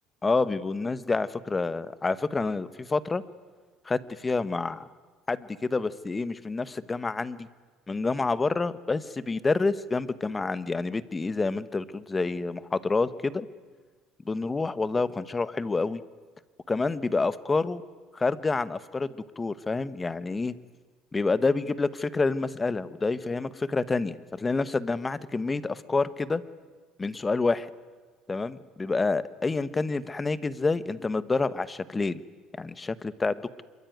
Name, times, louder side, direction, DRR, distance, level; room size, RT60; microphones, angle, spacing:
voice 1, 0.2-3.2 3.8-4.8 5.3-7.5 7.9-13.5 14.2-16.0 16.7-17.8 18.1-20.5 21.1-26.4 27.0-27.7 28.3-32.2 32.6-33.6, left 3 dB, 20° left, 16 dB, 1.2 m, -28 dB
26.5 x 23.0 x 9.3 m, 1.5 s
cardioid pair, 115°, 0 cm